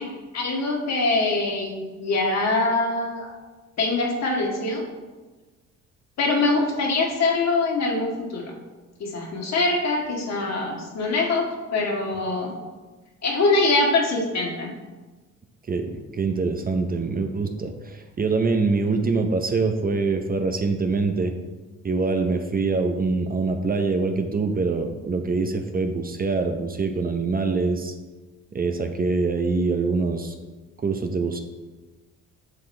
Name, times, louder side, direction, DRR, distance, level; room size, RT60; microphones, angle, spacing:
voice 1, 0.0-3.3 3.8-4.8 6.2-8.4 9.0-12.5 13.2-14.7, left 3 dB, 60° left, -1 dB, 1.7 m, -23 dB
voice 2, 15.7-21.4 21.8-28.0 28.5-30.3 30.8-31.4, right 4 dB, 30° right, 6 dB, 0.7 m, -24 dB
7.6 x 5.9 x 3.3 m, 1.2 s
cardioid pair, 90°, 30 cm